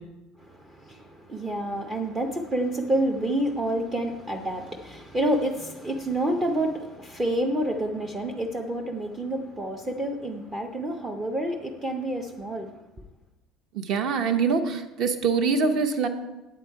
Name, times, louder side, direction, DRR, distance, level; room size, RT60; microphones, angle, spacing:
voice 1, 0.4-12.7, right 1 dB, 15° right, 2 dB, 0.5 m, -28 dB
voice 2, 13.7-16.1, right 5 dB, 40° right, 7 dB, 0.8 m, -24 dB
9.3 x 8.4 x 4.6 m, 1.0 s
cardioid pair, 175°, 0 cm